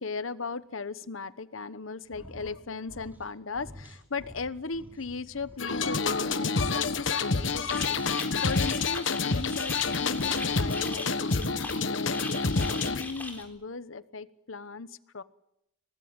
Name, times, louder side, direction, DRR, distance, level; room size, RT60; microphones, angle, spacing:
voice 1, 0.0-8.0 8.4-15.2, left 4 dB, 85° left, 14 dB, 1.1 m, -37 dB
sound 1, 2.0-2.6 2.8-3.3 3.5-5.9 6.3-8.3 9.6-11.0 12.5-13.5, equal, 10° right, 4.7 m, -50 dB
sound 2, 5.6-13.0, left 4 dB, 70° left, 1.3 m, -28 dB
sound 3, 7.7-13.4, left 2 dB, 10° left, 3.9 m, -40 dB
24.0 x 19.0 x 8.9 m, 0.80 s
head